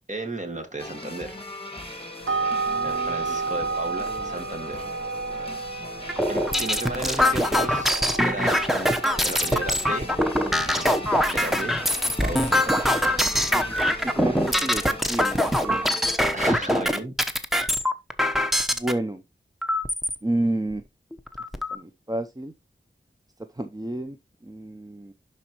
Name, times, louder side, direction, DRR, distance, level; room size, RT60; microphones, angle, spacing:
voice 1, 0.1-1.4 2.8-4.9 6.3-10.9 11.3-11.8 12.2-12.9 16.3-17.1, right 2 dB, 40° right, 1.8 m, -35 dB
sound 1, 0.8-16.2, left 2 dB, 30° left, 1.8 m, -39 dB
sound 2, 2.2-14.6, right 4 dB, 85° right, 0.7 m, -33 dB
voice 2, 2.6-3.2 4.0-4.3 13.5-13.8 14.0-14.8 15.1-16.0 18.8-19.2 20.2-20.8 21.7-22.5 23.6-24.2 24.4-25.1, right 1 dB, 20° right, 0.7 m, -30 dB
sound 3, 6.1-18.9 19.6-20.1 20.7-20.8 21.1-21.7, equal, ahead, 1.0 m, -23 dB
11.5 x 4.4 x 3.0 m
wide cardioid pair, 55°, 20 cm